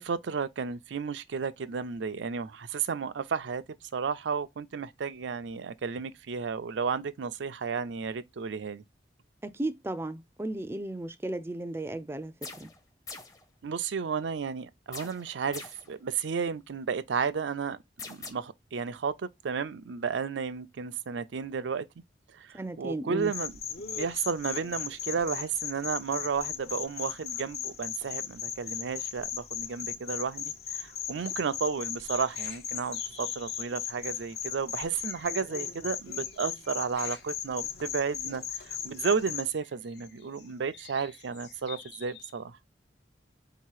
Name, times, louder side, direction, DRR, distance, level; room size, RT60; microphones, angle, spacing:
voice 1, 0.0-3.6 3.9-8.8 13.6-17.8 18.1-21.9 22.4-23.6 24.0-42.5, right 5 dB, 85° right, 0.5 m, -33 dB
voice 2, 9.4-12.7 22.5-23.3, right 1 dB, 15° right, 0.3 m, -35 dB
sound 1, 12.4-12.8 13.1-13.4 14.9-15.9 18.0-18.3, left 4 dB, 20° left, 0.6 m, -42 dB
sound 2, 23.2-39.5, left 8 dB, 55° left, 0.7 m, -37 dB
sound 3, 32.1-33.8 34.4-34.5 34.7-42.4, left 7 dB, 80° left, 0.9 m, -52 dB
4.0 x 2.8 x 4.7 m
head